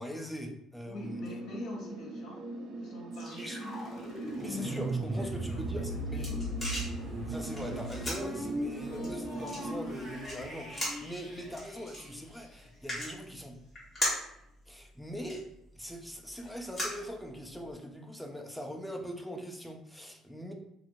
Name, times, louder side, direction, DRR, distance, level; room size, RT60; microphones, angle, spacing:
voice 1, 0.0-1.2 3.3-3.6 4.4-6.4 7.2-13.6 14.7-15.5 15.8-20.5, equal, ahead, 2 dB, 0.3 m, -41 dB
voice 2, 0.8-2.5 2.8-3.8 4.1-4.6 5.1-5.6 6.2-6.6, left 1 dB, 55° left, 0 dB, 0.8 m, -45 dB
sound 1, 1.0-10.0, right 2 dB, 65° right, 0.4 m, -41 dB
sound 2, 3.1-12.9, right 1 dB, 30° right, 1.5 m, -39 dB
sound 3, 5.7-17.7, left 1 dB, 15° left, 1.2 m, -40 dB
2.5 x 2.4 x 3.0 m, 0.80 s
cardioid pair, 150°, 0 cm